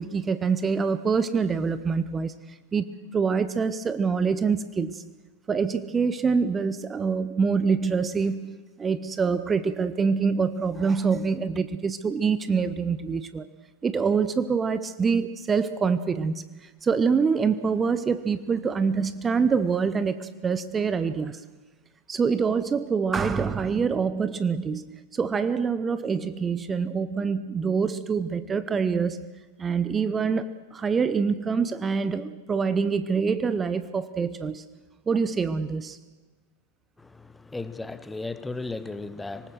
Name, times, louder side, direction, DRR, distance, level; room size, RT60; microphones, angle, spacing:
voice 1, 0.0-2.3 2.7-2.9 3.1-5.0 5.5-13.5 13.8-21.4 22.1-29.3 29.6-34.7 35.1-36.0, right 5 dB, 20° right, 13 dB, 0.8 m, -25 dB
voice 2, 37.0-39.5, left 3 dB, 10° left, 14 dB, 0.9 m, -35 dB
25.5 x 19.5 x 6.3 m, 1.3 s
figure-of-eight pair, 90°, 0 cm